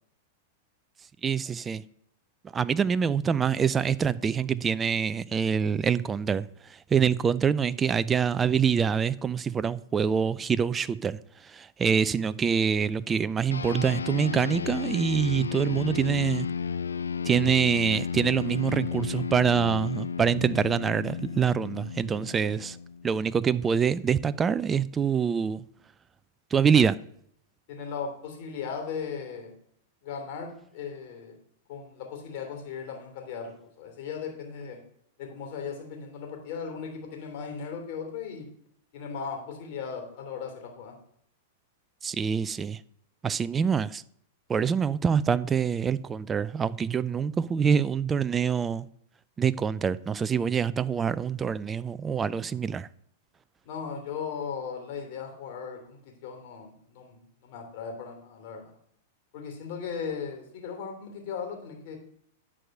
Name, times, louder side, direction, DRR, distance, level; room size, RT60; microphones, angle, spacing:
voice 1, 1.2-1.8 2.5-11.2 11.4-16.5 17.2-22.8 23.0-25.6 26.5-27.0 42.0-42.8 43.2-44.0 44.5-48.9 49.4-52.9, right 7 dB, 20° right, 0.4 m, -25 dB
sound 1, 13.5-23.2, left 6 dB, 85° left, 0.3 m, -33 dB
voice 2, 27.7-29.5 30.0-31.4 31.7-34.8 35.2-38.5 38.9-40.9 53.6-58.7 59.3-62.0, left 6 dB, 55° left, 3.0 m, -37 dB
10.0 x 4.8 x 6.5 m
hypercardioid pair, 105°, 0 cm